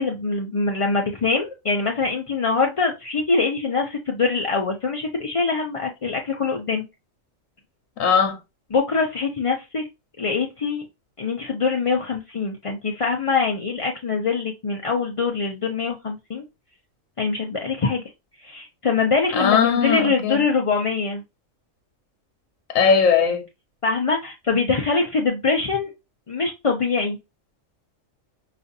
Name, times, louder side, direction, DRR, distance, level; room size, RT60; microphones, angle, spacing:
voice 1, 0.0-6.8 8.7-9.8 10.2-10.9 11.2-16.4 17.2-18.0 18.4-21.2 23.8-25.9 26.3-27.2, left 4 dB, 45° left, 0.4 m, -23 dB
voice 2, 8.0-8.4 19.3-20.4 22.7-23.5, left 6 dB, 85° left, 1.2 m, -19 dB
5.0 x 2.5 x 2.6 m
omnidirectional pair, 1.4 m